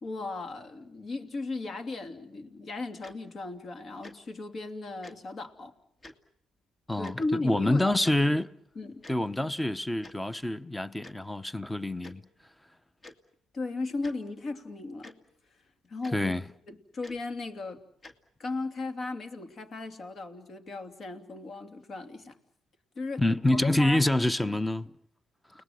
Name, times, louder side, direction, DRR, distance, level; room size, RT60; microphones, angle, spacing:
voice 1, 0.0-5.7 7.0-8.0 8.8-9.0 13.5-15.2 15.8-16.3 16.7-17.8 18.4-22.4 22.9-24.0, left 3 dB, 50° left, 2.9 m, -36 dB
Tick-tock, 3.0-3.1 4.0-4.1 5.0-5.1 6.0-6.1 7.0-7.1 8.0-8.1 9.0-9.2 10.0-10.1 11.0-11.1 12.0-12.1 13.0-13.1 14.0-14.1 15.0-15.1 16.0-16.1 17.0-17.2 18.0-18.1, left 1 dB, 35° left, 2.3 m, -47 dB
voice 2, 6.9-8.5 9.1-12.2 16.1-16.4 23.2-24.9, left 1 dB, 10° left, 1.0 m, -26 dB
30.0 x 20.0 x 7.6 m
supercardioid pair, 65°, 0 cm